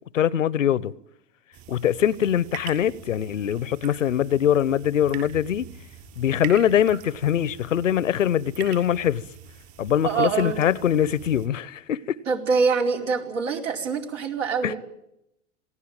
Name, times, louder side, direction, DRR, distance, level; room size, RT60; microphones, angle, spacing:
voice 1, 0.1-0.9 1.7-5.7 6.2-9.2 9.8-12.2 14.6-14.7, left 10 dB, 85° left, 0.9 m, -23 dB
sound 1, 1.5-11.5, right 8 dB, 45° right, 7.2 m, -43 dB
voice 2, 10.0-10.6 12.3-14.8, right 5 dB, 80° right, 4.8 m, -24 dB
27.5 x 18.5 x 8.9 m
hypercardioid pair, 95°, 37 cm